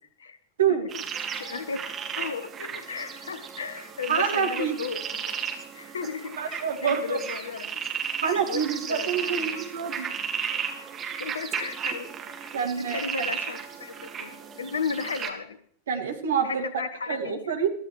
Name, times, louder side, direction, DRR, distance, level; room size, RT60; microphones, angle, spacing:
sound 1, 0.9-15.3, right 7 dB, 25° right, 2.1 m, -34 dB
voice 1, 1.4-1.8 2.2-5.4 5.7-7.8 8.3-9.5 10.8-10.9 11.2-12.5 12.8-15.6 16.4-17.5, left 5 dB, 70° left, 13 dB, 1.2 m, -35 dB
voice 2, 4.1-4.8 5.8-5.9 6.4-7.2 8.2-10.1 12.5-13.3 15.9-16.6 17.1-17.7, right 7 dB, 65° right, 5 dB, 2.3 m, -27 dB
22.0 x 14.5 x 3.3 m, 0.63 s
figure-of-eight pair, 90°, 0 cm